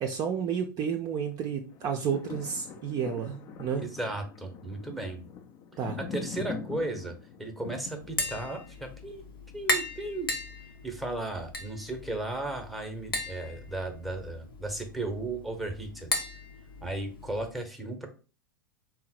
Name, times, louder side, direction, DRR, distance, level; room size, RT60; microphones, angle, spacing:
voice 1, 0.0-3.9 5.8-6.0, right 7 dB, 30° right, 3 dB, 0.5 m, -31 dB
sound 1, 1.7-10.0 10.5-10.6, left 5 dB, 35° left, 0.4 m, -43 dB
voice 2, 3.8-5.2 6.0-7.1 7.4-9.2 9.5-10.3 10.8-16.1 16.8-18.1, right 2 dB, ahead, 5 dB, 0.8 m, -35 dB
Tap, 8.0-17.5, left 2 dB, 80° left, 0.8 m, -37 dB
3.7 x 2.1 x 4.2 m, 0.35 s
figure-of-eight pair, 95°, 12 cm